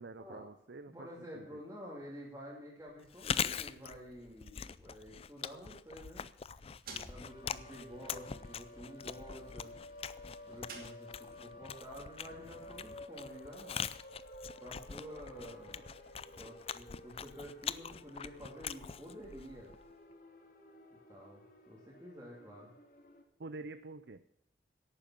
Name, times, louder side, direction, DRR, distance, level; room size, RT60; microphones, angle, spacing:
voice 1, 0.0-1.1 1.3-1.6 23.4-24.2, right 3 dB, 70° right, 12 dB, 0.6 m, -47 dB
voice 2, 0.9-6.3 7.1-9.7 10.5-13.8 14.6-15.9 16.4-19.7 21.1-22.7, equal, 15° right, -6 dB, 2.7 m, -50 dB
Chewing mastication, 3.0-19.9, left 7 dB, 35° left, 0.4 m, -43 dB
sound 1, 6.4-11.5, right 4 dB, 55° right, 2.5 m, -55 dB
sound 2, 7.2-23.2, left 2 dB, 50° left, 2.1 m, -54 dB
11.0 x 9.0 x 7.4 m, 0.73 s
head